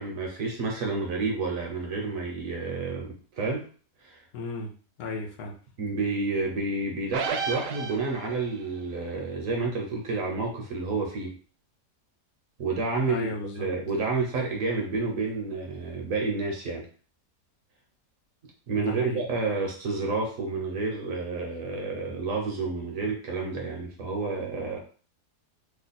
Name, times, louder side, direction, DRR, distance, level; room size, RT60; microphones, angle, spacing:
voice 1, 0.0-3.6 4.0-4.2 5.8-11.3 12.6-16.8 18.7-24.8, right 3 dB, 60° right, 0 dB, 1.1 m, -30 dB
voice 2, 4.3-4.7 5.0-5.5 13.1-13.7 18.8-19.2, left 3 dB, 70° left, 2 dB, 1.0 m, -34 dB
sound 1, 7.1-8.5, right 6 dB, 90° right, 1.2 m, -32 dB
3.1 x 2.2 x 4.1 m, 0.41 s
omnidirectional pair, 1.7 m